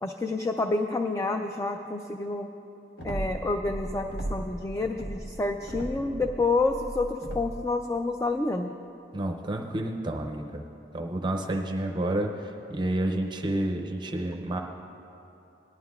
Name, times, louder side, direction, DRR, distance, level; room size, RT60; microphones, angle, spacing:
voice 1, 0.0-2.5 3.0-8.7, left 3 dB, 15° left, 5 dB, 0.3 m, -28 dB
sound 1, 3.0-4.6 4.9-7.7, right 1 dB, 70° left, 1.2 m, -36 dB
voice 2, 9.1-10.6 10.9-12.3 12.7-14.6, right 1 dB, 25° right, 2 dB, 0.6 m, -29 dB
19.0 x 11.5 x 2.4 m, 2.9 s
head